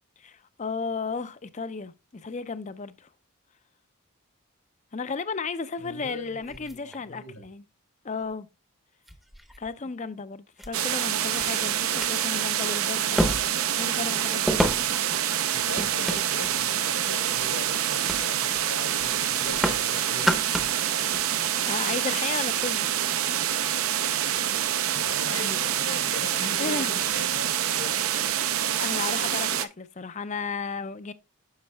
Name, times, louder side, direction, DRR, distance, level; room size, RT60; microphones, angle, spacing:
voice 1, 0.2-3.1 4.9-7.6 8.0-8.5 9.6-13.4 13.8-14.6 21.7-22.9 26.6-27.3 28.8-31.1, left 4 dB, 30° left, 0.5 m, -34 dB
voice 2, 5.8-7.4 15.5-20.3 25.0-27.5 27.7-28.0, left 3 dB, 90° left, 3.9 m, -40 dB
sound 1, 6.4-7.5 8.3-8.4 9.1-9.7 10.6-10.7 11.4-11.5 11.9-12.1 13.2-13.7 14.5-15.1 15.8-16.6 17.2-17.5 18.1-18.3 18.5-18.7 19.0-19.9 20.1-20.8 21.1-21.2, equal, ahead, 0.7 m, -29 dB
sound 2, 10.7-29.6, right 10 dB, 70° right, 0.6 m, -26 dB
9.6 x 6.4 x 2.2 m
head